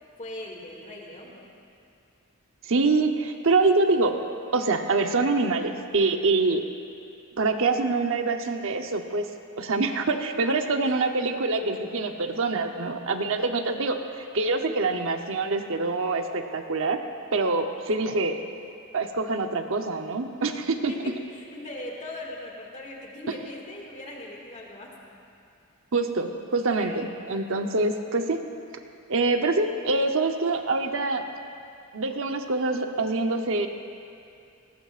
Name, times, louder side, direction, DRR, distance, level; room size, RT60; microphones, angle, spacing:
voice 1, 0.2-1.4 10.5-10.6 10.8-10.9 17.3-17.6 20.9-25.2 26.8-27.1 29.4-29.5, left 1 dB, 35° left, -2 dB, 2.2 m, -40 dB
voice 2, 2.6-4.2 4.5-6.6 7.4-9.3 9.6-17.0 17.3-18.4 18.9-20.9 25.9-28.4 29.1-31.2 31.9-33.7, right 3 dB, 65° right, 5 dB, 0.9 m, -25 dB
19.5 x 18.5 x 2.5 m, 2.5 s
head